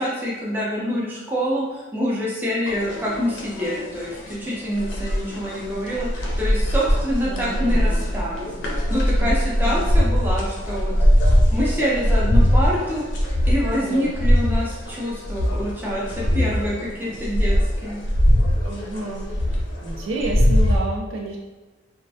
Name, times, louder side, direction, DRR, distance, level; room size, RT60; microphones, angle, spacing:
voice 1, 0.0-8.5 8.9-10.9 11.5-13.0 13.5-17.5 17.8-18.0, equal, 10° right, -6 dB, 0.4 m, -26 dB
sound 1, 2.7-20.8, equal, 65° left, 0.4 m, -21 dB
voice 2, 7.2-7.9 9.2-10.0 13.8-14.1 18.6-19.3 19.8-21.4, right 2 dB, 85° right, 0 dB, 0.5 m, -30 dB
2.2 x 2.1 x 2.6 m, 1.1 s
head